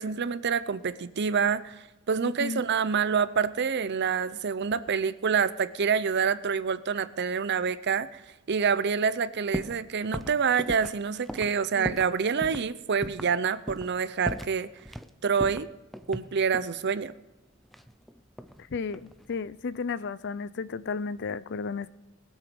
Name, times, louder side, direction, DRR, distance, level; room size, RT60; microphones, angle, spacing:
voice 1, 0.0-8.2 8.5-14.7 15.2-15.7 16.1-17.1, right 6 dB, 50° right, 0.6 m, -27 dB
voice 2, 2.2-2.6 11.8-12.0 18.7-19.0 19.3-21.9, left 5 dB, 55° left, 0.5 m, -33 dB
sound 1, 9.5-9.8 10.1-12.1 12.4-12.7 13.0-13.3 13.7-14.0 14.3-15.1 15.4-16.8 17.7-18.6 18.9-19.4, equal, ahead, 0.5 m, -37 dB
20.5 x 8.2 x 5.3 m
head